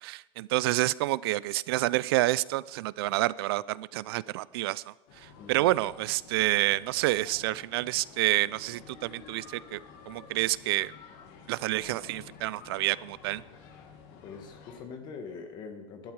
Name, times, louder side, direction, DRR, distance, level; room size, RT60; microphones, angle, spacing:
voice 1, 0.0-9.8 10.1-10.9 11.5-13.4, right 18 dB, 80° right, 21 dB, 0.5 m, -28 dB
sound 1, 5.1-14.8, left 5 dB, 50° left, 2.1 m, -51 dB
voice 2, 5.4-5.7 14.2-16.1, left 5 dB, 35° left, 6 dB, 1.4 m, -43 dB
16.0 x 12.0 x 4.7 m, 0.93 s
supercardioid pair, 165°, 13 cm